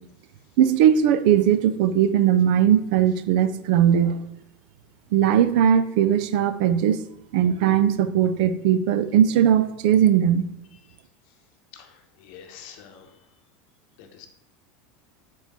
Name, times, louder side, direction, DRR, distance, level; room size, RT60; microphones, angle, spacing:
voice 1, 0.6-4.2 5.1-7.0 7.3-10.4, right 9 dB, 65° right, 11 dB, 0.5 m, -19 dB
voice 2, 11.7-13.2 14.0-14.3, left 8 dB, 55° left, 5 dB, 1.0 m, -46 dB
5.0 x 3.9 x 5.5 m, 0.81 s
supercardioid pair, 160°, 5 cm